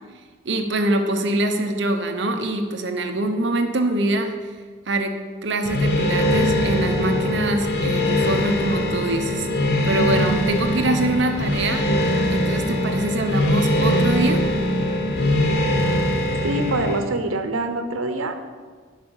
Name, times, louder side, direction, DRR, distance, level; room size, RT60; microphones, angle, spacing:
voice 1, 0.4-4.3 4.9-5.1 5.4-14.4, right 1 dB, 60° right, 6 dB, 0.9 m, -24 dB
sound 1, 5.7-17.0, left 1 dB, 50° left, 1.0 m, -22 dB
voice 2, 16.4-18.4, right 2 dB, 90° right, 8 dB, 0.9 m, -25 dB
8.4 x 5.7 x 7.1 m, 1.5 s
head